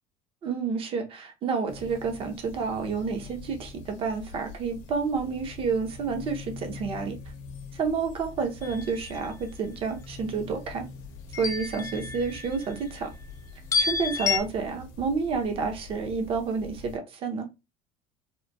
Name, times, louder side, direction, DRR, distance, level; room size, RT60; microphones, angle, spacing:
voice 1, 0.4-7.2 7.7-10.9 11.4-13.1 13.8-17.5, right 5 dB, 45° right, 0.6 m, -30 dB
sound 1, 1.7-17.0, left 4 dB, 80° left, 0.7 m, -44 dB
sound 2, 8.6-9.2 11.3-12.7 13.7-14.4, left 5 dB, 25° left, 0.3 m, -29 dB
2.9 x 2.1 x 2.2 m
cardioid pair, 135°, 14 cm